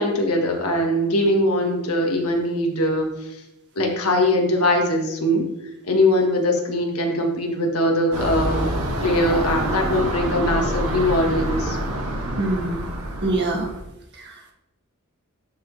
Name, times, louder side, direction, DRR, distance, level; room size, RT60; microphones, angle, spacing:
voice 1, 0.0-3.1 3.8-5.5 5.9-8.7 9.0-11.8, left 1 dB, 75° left, 1 dB, 1.5 m, -21 dB
sound 1, 8.1-13.8, right 1 dB, 85° right, 1.5 m, -26 dB
voice 2, 12.4-12.9 13.2-13.7 14.1-14.5, right 2 dB, 50° right, 1 dB, 1.5 m, -25 dB
12.0 x 4.3 x 3.3 m, 0.90 s
head